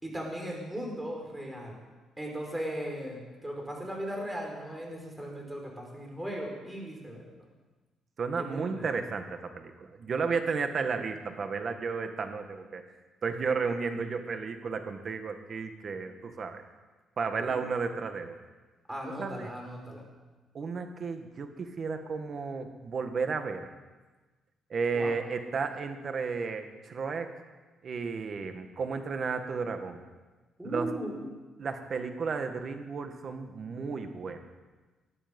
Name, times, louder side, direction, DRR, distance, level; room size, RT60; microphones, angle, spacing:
voice 1, 0.0-1.8 2.2-7.2 8.4-8.9 17.4-17.6 18.9-20.0 24.9-25.1 30.6-31.3, equal, 10° right, 0 dB, 5.3 m, -37 dB
voice 2, 8.2-12.8 13.2-16.6 17.2-18.4 19.0-19.5 20.5-23.7 24.7-27.3 27.8-30.0 30.6-30.9 31.6-34.4, right 5 dB, 50° right, 7 dB, 1.8 m, -33 dB
19.5 x 12.0 x 5.4 m, 1.2 s
cardioid pair, 90°, 0 cm